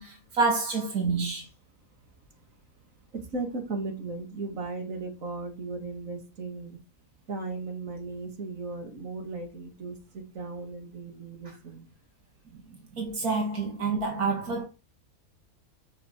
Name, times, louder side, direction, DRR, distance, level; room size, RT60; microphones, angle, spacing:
voice 1, 0.0-1.5 12.5-12.6 12.9-14.6, right 4 dB, 80° right, 2.5 m, -28 dB
voice 2, 3.1-6.8 7.3-11.9, right 3 dB, 60° right, 2.7 m, -36 dB
7.9 x 6.9 x 4.6 m
omnidirectional pair, 1.6 m